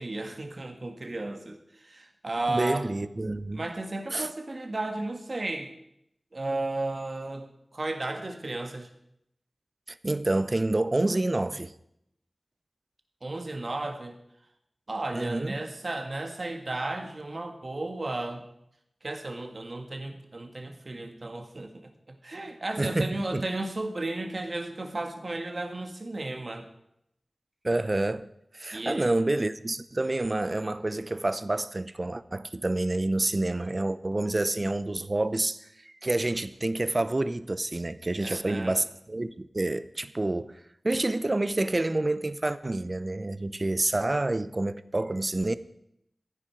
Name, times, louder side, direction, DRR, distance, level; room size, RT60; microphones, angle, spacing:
voice 1, 0.0-2.9 3.5-5.7 6.3-8.9 13.2-14.2 14.9-18.5 19.0-26.7 28.7-29.1 38.2-38.8, right 2 dB, 55° right, 1.5 m, -34 dB
voice 2, 2.5-3.6 4.1-4.3 9.9-11.7 15.1-15.6 22.8-23.5 27.6-28.3 28.5-40.6 40.8-45.5, right 2 dB, 40° right, 0.6 m, -28 dB
14.5 x 9.9 x 4.5 m
cardioid pair, 45°, 0 cm